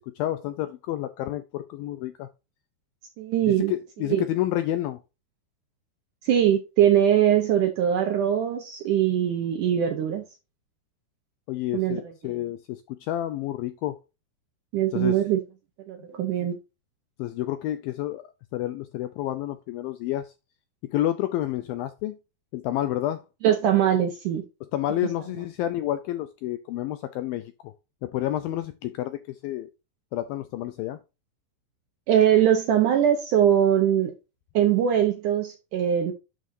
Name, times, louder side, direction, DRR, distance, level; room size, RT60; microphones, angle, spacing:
voice 1, 0.2-2.3 3.5-5.0 11.5-14.0 14.9-15.2 16.4-16.5 17.2-18.2 18.5-20.3 20.8-22.2 22.5-23.2 24.7-27.7 28.0-29.7 30.1-31.0, left 13 dB, 80° left, 2.1 m, -29 dB
voice 2, 3.2-3.7 4.1-4.2 6.2-10.2 11.7-12.1 14.7-15.4 15.9-16.6 23.4-24.4 32.1-34.1 34.5-36.1, right 10 dB, 70° right, 1.9 m, -22 dB
11.0 x 5.3 x 2.7 m
omnidirectional pair, 4.8 m